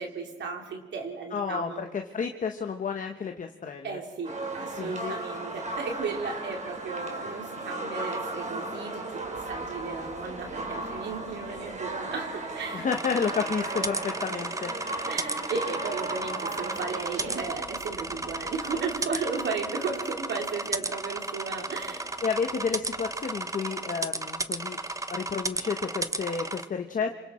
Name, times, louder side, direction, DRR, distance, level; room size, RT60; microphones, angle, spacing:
voice 1, 0.0-1.8 3.8-12.8 15.1-22.1, right 4 dB, 65° right, 2 dB, 3.1 m, -35 dB
voice 2, 1.3-4.0 4.7-5.2 12.7-14.7 22.2-24.8 25.1-27.2, left 6 dB, 40° left, 5 dB, 1.3 m, -31 dB
sound 1, 4.2-17.4, right 2 dB, 35° right, 3.8 m, -36 dB
sound 2, 5.9-23.2, right 1 dB, 85° right, 7.2 m, -55 dB
sound 3, 12.9-26.6, right 2 dB, 15° right, 1.0 m, -34 dB
28.0 x 26.0 x 4.4 m, 1.4 s
cardioid pair, 90°, 20 cm